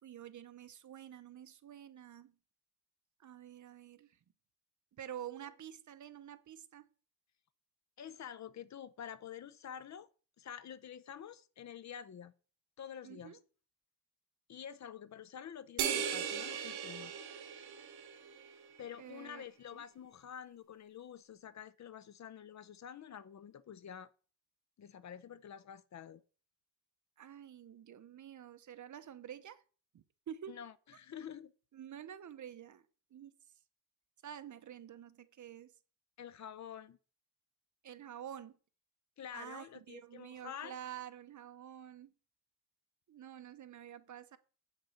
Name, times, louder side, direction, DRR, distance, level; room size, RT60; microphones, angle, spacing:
voice 1, 0.0-2.3 3.2-4.2 5.0-6.9 13.0-13.4 19.0-19.5 19.7-19.8 27.2-29.6 29.9-30.6 31.7-32.9 33.1-33.3 34.2-35.7 37.8-38.5 39.3-42.1 43.1-44.4, right 10 dB, 50° right, 0.9 m, -49 dB
voice 2, 8.0-10.1 10.4-12.3 12.8-13.4 14.5-17.1 18.8-24.1 24.8-26.2 30.5-31.5 36.2-37.0 39.2-40.8, left 8 dB, 45° left, 0.6 m, -48 dB
sound 1, 15.8-18.5, right 8 dB, 75° right, 1.3 m, -38 dB
8.5 x 6.4 x 5.7 m
cardioid pair, 125°, 39 cm